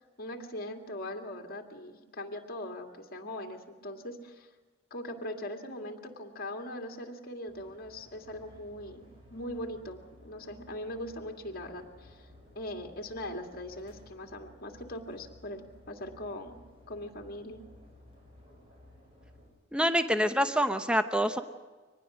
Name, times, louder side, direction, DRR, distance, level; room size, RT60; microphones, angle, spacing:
voice 1, 0.2-4.5 4.9-12.3 12.6-16.6 16.9-17.6, left 1 dB, 50° left, 2 dB, 2.2 m, -40 dB
sound 1, 7.5-19.5, left 1 dB, 25° right, 6.2 m, -56 dB
voice 2, 19.7-21.4, equal, 5° right, 8 dB, 0.7 m, -26 dB
24.0 x 19.5 x 6.2 m, 1.3 s
head